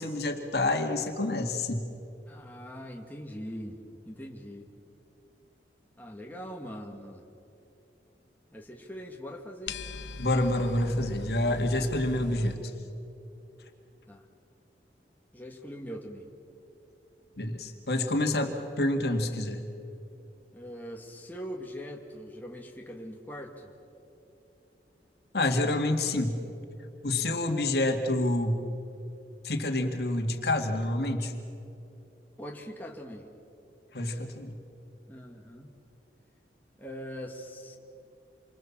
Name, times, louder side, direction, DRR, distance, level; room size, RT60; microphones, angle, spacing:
voice 1, 0.0-1.8 10.2-12.6 17.4-19.6 25.3-26.4 27.0-28.6 29.4-31.3 33.9-34.5, left 1 dB, 65° left, 5 dB, 2.1 m, -28 dB
voice 2, 2.3-4.7 6.0-7.2 8.5-9.8 14.1-14.3 15.3-16.2 20.5-23.7 27.2-27.5 32.4-33.3 35.1-35.7 36.8-37.8, equal, 10° left, 0 dB, 1.8 m, -42 dB
sound 1, 9.7-12.5, left 3 dB, 80° left, 0.9 m, -41 dB
28.5 x 24.0 x 7.3 m, 2.8 s
head